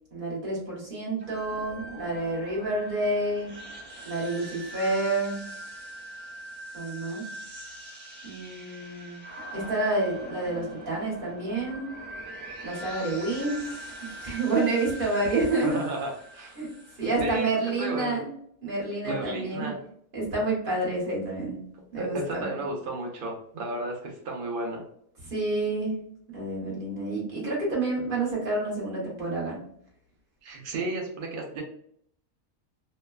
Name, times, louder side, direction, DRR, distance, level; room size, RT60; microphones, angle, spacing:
voice 1, 0.1-3.5 4.0-5.4 6.7-7.3 8.2-9.2 9.5-11.9 12.6-13.7 14.2-15.8 16.6-18.3 18.6-19.7 20.1-21.6 21.9-22.5 25.2-25.9 26.3-29.6, right 2 dB, 40° right, -4 dB, 1.1 m, -29 dB
sound 1, 1.2-17.2, right 1 dB, 10° right, 0.6 m, -42 dB
voice 2, 15.6-16.6 17.2-18.2 19.0-19.8 22.0-24.8 30.4-31.6, right 2 dB, 80° right, 0 dB, 0.4 m, -33 dB
3.0 x 2.2 x 2.3 m, 0.67 s
omnidirectional pair, 1.6 m